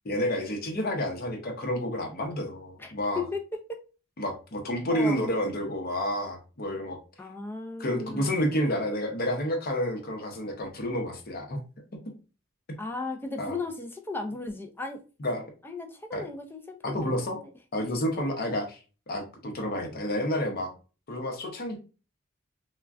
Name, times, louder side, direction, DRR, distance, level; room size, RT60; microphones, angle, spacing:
voice 1, 0.0-3.2 4.2-7.0 7.8-11.6 13.4-13.6 15.2-15.4 16.1-16.2 16.8-17.4 17.7-18.8 19.1-20.7 21.1-21.8, equal, 50° left, 3 dB, 0.7 m, -30 dB
voice 2, 2.8-3.8 4.9-5.3 7.2-8.6 12.8-15.0 15.6-17.4, left 3 dB, 10° left, 4 dB, 0.3 m, -36 dB
3.4 x 2.2 x 2.3 m, 0.34 s
head